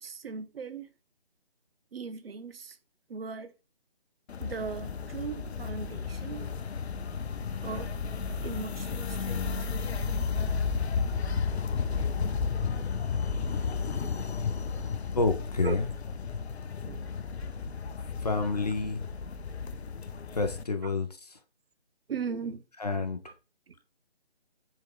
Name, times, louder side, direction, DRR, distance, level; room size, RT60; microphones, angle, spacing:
voice 1, 0.0-0.9 1.9-2.8 3.1-3.5 4.4-6.5 7.6-7.9 8.4-9.7 15.6-15.7 16.8-17.1 22.1-22.6, right 5 dB, 65° right, 0.5 m, -38 dB
sound 1, 4.3-20.6, left 5 dB, 90° left, 0.5 m, -33 dB
voice 2, 15.1-15.9 18.2-19.0 20.3-21.4 22.8-23.2, left 3 dB, 40° left, 0.5 m, -29 dB
3.7 x 3.1 x 3.2 m
figure-of-eight pair, 160°, 31 cm